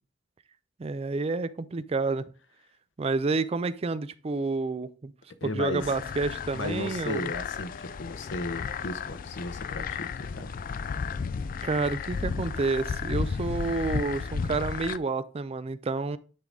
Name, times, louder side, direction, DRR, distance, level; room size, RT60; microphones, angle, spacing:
voice 1, 0.8-2.2 3.0-5.1 5.4-7.2 11.6-16.2, right 3 dB, 30° right, 0.4 m, -29 dB
voice 2, 5.3-5.9 6.5-10.5, left 2 dB, 75° left, 0.8 m, -35 dB
sound 1, 5.8-15.0, left 5 dB, 45° left, 0.3 m, -33 dB
10.0 x 3.9 x 3.6 m
head